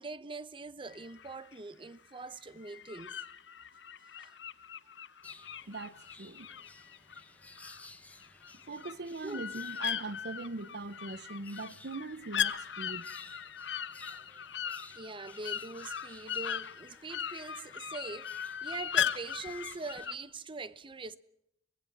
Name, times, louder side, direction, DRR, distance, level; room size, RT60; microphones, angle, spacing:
voice 1, 0.0-3.2 4.2-4.3 9.2-9.5 14.9-18.3 18.6-21.2, right 3 dB, 30° right, 0.8 m, -43 dB
sound 1, 0.9-1.6 2.6-7.9 8.2-20.1, left 9 dB, 85° left, 0.9 m, -38 dB
sound 2, 5.2-20.1, left 2 dB, 10° left, 1.3 m, -57 dB
voice 2, 5.7-6.5 8.7-13.1, right 3 dB, 65° right, 0.8 m, -41 dB
24.0 x 18.5 x 7.2 m
head